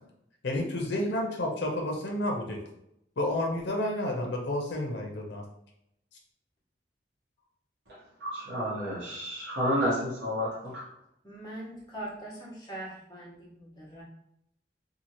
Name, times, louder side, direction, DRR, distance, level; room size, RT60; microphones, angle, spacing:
voice 1, 0.4-2.6 3.2-5.4, left 1 dB, 85° left, 1 dB, 0.6 m, -30 dB
voice 2, 8.2-10.8, equal, 70° right, -6 dB, 1.1 m, -30 dB
voice 3, 11.2-14.0, right 1 dB, 25° left, -7 dB, 1.1 m, -42 dB
2.8 x 2.5 x 2.8 m, 0.77 s
head